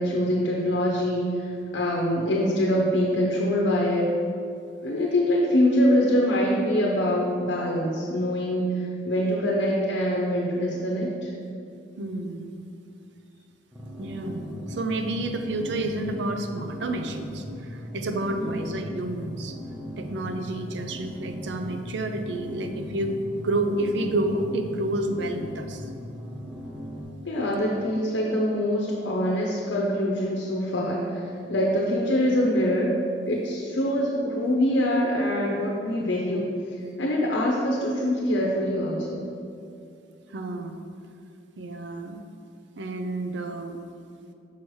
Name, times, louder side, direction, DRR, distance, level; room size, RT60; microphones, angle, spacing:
voice 1, 0.0-4.2 4.8-11.3 18.4-18.6 27.3-31.2 31.5-32.9 33.3-36.5 37.0-39.3, equal, 80° left, -2 dB, 0.7 m, -24 dB
voice 2, 12.0-12.7 14.0-19.6 20.0-25.8 40.3-40.8 41.6-42.2 42.8-43.8, right 1 dB, 70° right, 6 dB, 0.5 m, -30 dB
sound 1, 13.7-27.0, equal, 10° right, 0.9 m, -38 dB
6.1 x 5.6 x 3.1 m, 2.5 s
head